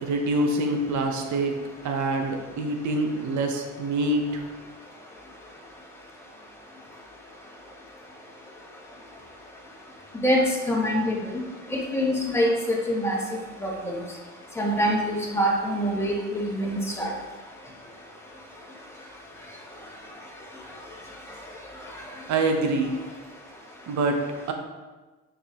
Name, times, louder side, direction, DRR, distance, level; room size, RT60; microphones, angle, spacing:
voice 1, 0.0-1.6 1.8-4.4 22.3-22.9 23.9-24.2, right 2 dB, 70° right, 4 dB, 1.0 m, -25 dB
voice 2, 10.7-11.2 11.7-13.2 13.6-13.9 14.6-17.1, equal, 10° left, -3 dB, 1.5 m, -25 dB
6.5 x 5.3 x 2.9 m, 1.2 s
cardioid pair, 90°, 30 cm